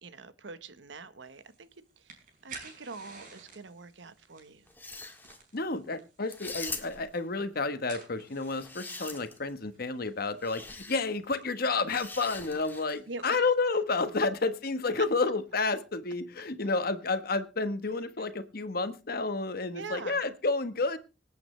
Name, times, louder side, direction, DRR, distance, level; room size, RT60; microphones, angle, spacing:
voice 1, 0.0-4.7 13.1-13.4 15.0-15.1 18.2-18.3 19.7-20.2, right 4 dB, 90° right, 13 dB, 1.1 m, -44 dB
sound 1, 1.3-13.7, right 4 dB, 50° right, 5.2 m, -54 dB
sound 2, 4.7-5.4 6.3-7.2 8.3-9.5 10.4-11.0 11.9-13.0, left 3 dB, 10° left, 1.7 m, -42 dB
voice 2, 5.5-21.0, left 3 dB, 55° left, 11 dB, 1.2 m, -30 dB
25.0 x 8.7 x 3.2 m, 0.32 s
head